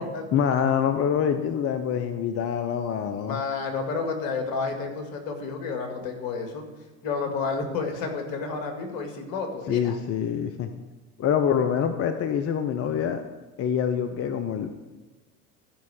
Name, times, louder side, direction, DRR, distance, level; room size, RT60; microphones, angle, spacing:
voice 1, 0.3-3.4 9.7-10.7 11.2-13.2 13.6-14.8, left 8 dB, 35° left, 9 dB, 0.7 m, -25 dB
voice 2, 3.3-6.6 7.0-10.0, left 4 dB, 55° left, 4 dB, 2.0 m, -30 dB
14.0 x 5.4 x 4.8 m, 1.2 s
hypercardioid pair, 80°, 42 cm